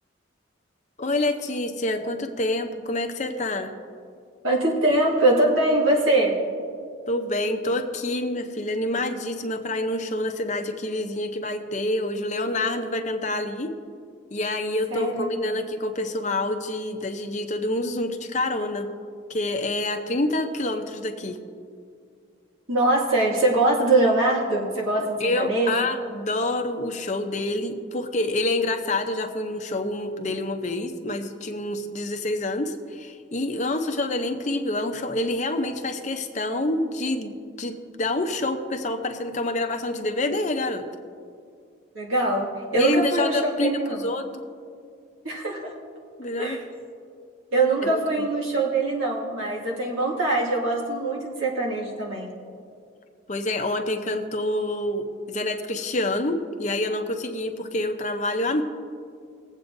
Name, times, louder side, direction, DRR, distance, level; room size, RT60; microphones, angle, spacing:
voice 1, 1.0-3.7 7.1-13.7 14.3-18.9 19.3-21.4 25.2-40.8 42.7-43.7 44.0-44.3 46.2-46.6 47.8-48.0 53.3-58.6, left 2 dB, 35° left, 6 dB, 0.6 m, -27 dB
voice 2, 4.4-6.4 14.9-15.5 22.7-25.8 41.9-44.0 45.2-45.7 46.4-46.6 47.5-52.3, right 2 dB, 85° right, -3 dB, 2.0 m, -23 dB
20.5 x 8.2 x 2.6 m, 2.3 s
head